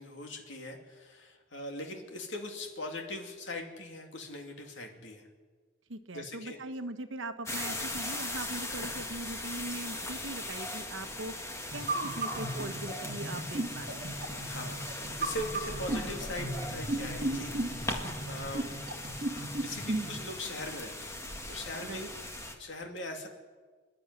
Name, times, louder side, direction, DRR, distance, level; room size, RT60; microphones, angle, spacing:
voice 1, 0.0-5.3 6.1-6.6 7.8-8.0 14.2-18.7 19.3-21.2 21.5-23.3, left 1 dB, 60° left, 3 dB, 2.7 m, -41 dB
voice 2, 5.9-11.4 11.7-14.4 21.8-22.1, right 2 dB, 65° right, 9 dB, 1.2 m, -41 dB
sound 1, 7.5-22.6, left 1 dB, 15° left, 1.7 m, -39 dB
sound 2, 11.7-20.2, right 1 dB, 35° right, 2.0 m, -36 dB
27.0 x 11.0 x 9.8 m, 1.5 s
head